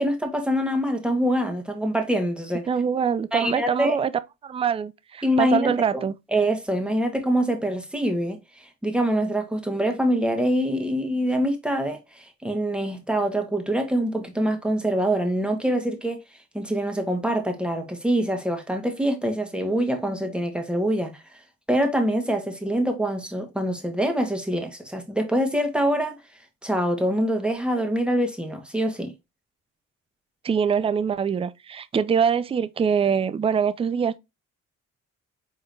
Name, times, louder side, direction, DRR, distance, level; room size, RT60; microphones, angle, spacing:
voice 1, 0.0-2.7 3.3-4.0 5.2-6.0 6.3-16.2 16.5-21.1 21.7-26.2 26.6-29.1, equal, 5° right, 1.4 m, -25 dB
voice 2, 2.7-4.1 4.4-6.1 30.4-34.2, right 7 dB, 20° right, 0.4 m, -24 dB
5.1 x 3.9 x 2.6 m
cardioid pair, 90°, 30 cm